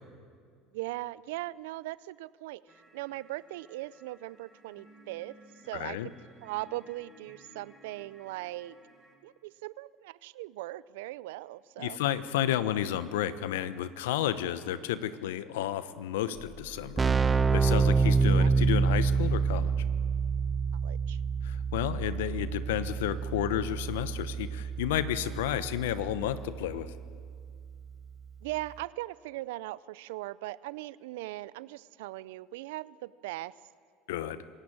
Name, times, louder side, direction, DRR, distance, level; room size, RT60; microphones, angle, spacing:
voice 1, 0.7-2.6 2.9-5.3 5.7-6.0 6.4-8.8 9.2-12.0 18.4-18.5 20.8-21.2 25.2-25.4 28.4-33.5, right 18 dB, 80° right, 19 dB, 0.5 m, -39 dB
sound 1, 2.7-9.2, equal, 5° right, 5.9 m, -57 dB
voice 2, 5.7-6.1 11.8-19.7 21.4-26.9 34.1-34.4, left 11 dB, 85° left, 13 dB, 1.0 m, -32 dB
Keyboard (musical), 16.4-16.5 16.7-27.3, right 5 dB, 25° right, 1.1 m, -28 dB
26.5 x 16.0 x 8.8 m, 2.1 s
hypercardioid pair, 85°, 0 cm